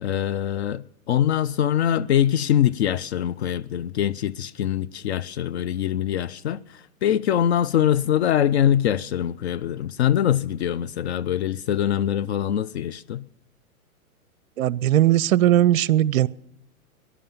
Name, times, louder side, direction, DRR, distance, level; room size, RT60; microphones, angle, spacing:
voice 1, 0.0-13.2, left 10 dB, 50° left, 0.5 m, -23 dB
voice 2, 14.6-16.3, right 13 dB, 65° right, 0.5 m, -18 dB
14.0 x 11.0 x 7.3 m
figure-of-eight pair, 105°, 43 cm